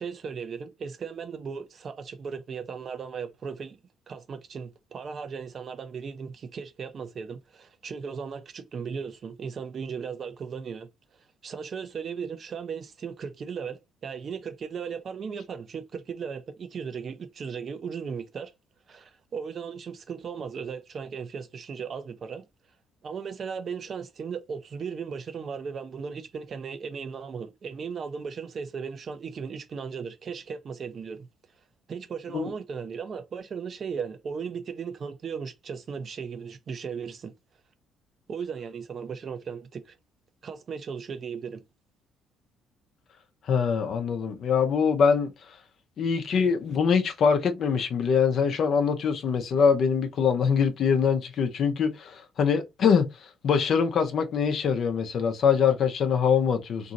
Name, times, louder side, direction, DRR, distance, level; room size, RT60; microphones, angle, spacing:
voice 1, 0.0-3.8 4.1-10.9 11.4-18.5 18.9-22.4 23.0-31.3 31.9-37.3 38.3-40.0 40.4-41.6, right 6 dB, 50° right, 0.5 m, -36 dB
voice 2, 43.5-45.3 46.0-53.1 53.4-56.9, left 6 dB, 60° left, 0.6 m, -23 dB
2.8 x 2.7 x 2.5 m
hypercardioid pair, 50°, 0 cm